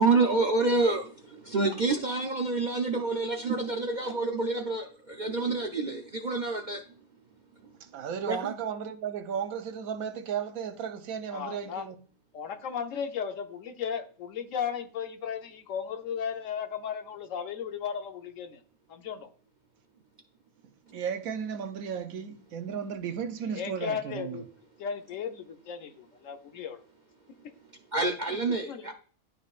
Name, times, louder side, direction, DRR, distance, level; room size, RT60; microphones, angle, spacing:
voice 1, 0.0-6.8 8.3-8.5 27.9-28.9, right 3 dB, 55° right, 0.5 m, -28 dB
voice 2, 7.9-11.9 20.9-24.4, right 7 dB, 85° right, 1.2 m, -34 dB
voice 3, 11.3-11.9 12.3-18.6 18.9-19.3 23.5-24.5 24.8-26.8 28.3-28.4 28.7-28.9, left 7 dB, 70° left, 1.1 m, -35 dB
11.5 x 4.1 x 2.4 m
omnidirectional pair, 1.4 m